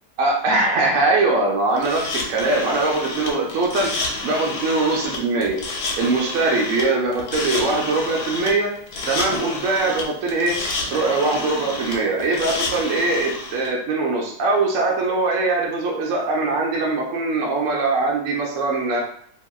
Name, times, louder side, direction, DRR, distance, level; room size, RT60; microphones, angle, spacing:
voice 1, 0.2-4.0 4.2-5.6 6.0-8.7 9.1-10.6 10.9-19.0, right 3 dB, 80° right, -1 dB, 0.7 m, -21 dB
sound 1, 1.8-13.7, left 3 dB, 70° left, 1.1 m, -29 dB
2.8 x 2.7 x 2.2 m, 0.63 s
omnidirectional pair, 1.9 m